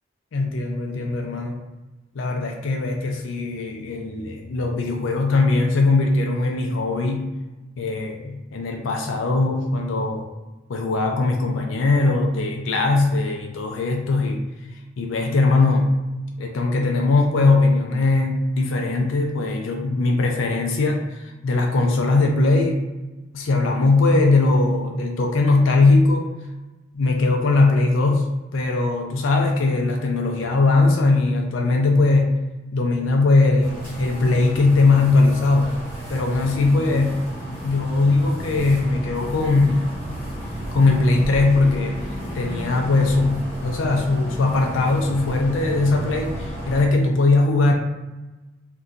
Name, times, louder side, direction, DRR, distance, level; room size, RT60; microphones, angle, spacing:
voice 1, 0.3-1.6 2.1-7.3 7.8-10.3 10.7-14.4 14.7-15.9 16.4-22.8 23.3-26.3 26.9-28.3 28.5-32.4 32.7-35.7 36.1-37.2 37.6-39.9 40.7-47.7, left 3 dB, 85° left, 1 dB, 0.4 m, -20 dB
sound 1, 33.6-46.9, equal, 10° left, 1.0 m, -32 dB
2.6 x 2.2 x 3.7 m, 1.1 s
head